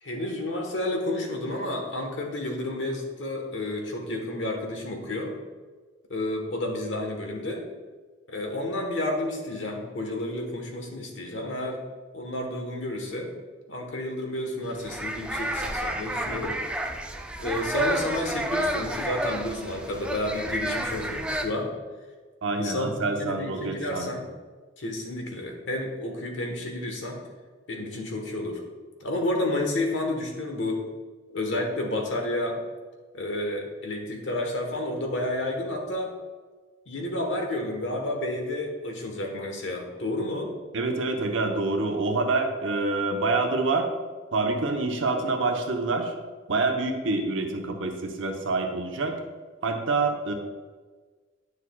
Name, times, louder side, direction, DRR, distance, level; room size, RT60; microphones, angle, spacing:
voice 1, 0.0-5.3 6.1-7.6 8.3-11.9 12.1-13.3 13.7-16.6 17.4-21.7 22.5-24.3 24.8-27.2 27.7-28.6 29.0-30.8 31.3-32.6 33.1-36.1 36.9-40.5, left 1 dB, 75° left, 2 dB, 1.3 m, -30 dB
sound 1, 14.7-21.4, right 1 dB, 5° right, 0.4 m, -31 dB
voice 2, 22.4-24.1 40.7-43.9 44.3-46.1 46.5-49.1 49.6-50.3, right 3 dB, 85° right, 3 dB, 0.9 m, -26 dB
9.7 x 6.6 x 2.3 m, 1.4 s
head